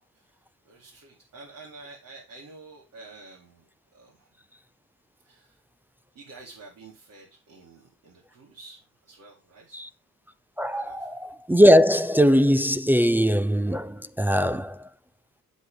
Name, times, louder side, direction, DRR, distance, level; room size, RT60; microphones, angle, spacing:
voice 1, 0.1-4.4 5.2-5.6 6.1-9.8 10.8-11.1, right 3 dB, 65° right, 4.5 m, -49 dB
voice 2, 10.6-14.9, equal, 5° right, 0.5 m, -20 dB
8.6 x 8.1 x 3.9 m
cardioid pair, 90°, 30 cm